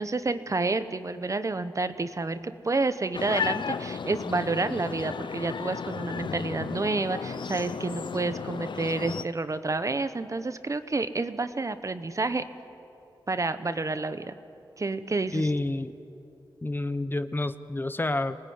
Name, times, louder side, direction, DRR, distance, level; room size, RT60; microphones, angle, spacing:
voice 1, 0.0-12.4 13.3-14.3 14.8-15.5, right 3 dB, 40° right, 11 dB, 1.0 m, -29 dB
sound 1, 3.1-9.2, left 6 dB, 70° left, 0.6 m, -34 dB
voice 2, 15.3-15.9 16.6-18.4, left 2 dB, 25° left, 12 dB, 0.8 m, -29 dB
26.5 x 19.0 x 9.6 m, 2.9 s
wide cardioid pair, 85°, 8 cm